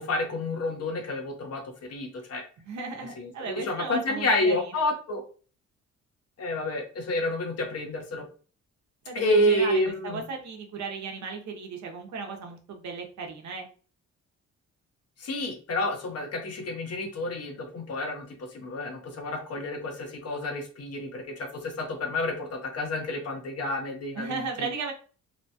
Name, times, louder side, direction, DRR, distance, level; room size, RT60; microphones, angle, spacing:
voice 1, 0.0-2.4 3.2-5.2 6.4-8.2 9.1-10.2 15.2-24.7, left 1 dB, 55° left, 3 dB, 0.8 m, -29 dB
voice 2, 2.6-4.9 9.1-13.7 24.2-24.9, right 4 dB, 65° right, 2 dB, 0.8 m, -35 dB
2.9 x 2.2 x 2.7 m, 0.40 s
cardioid pair, 90°, 30 cm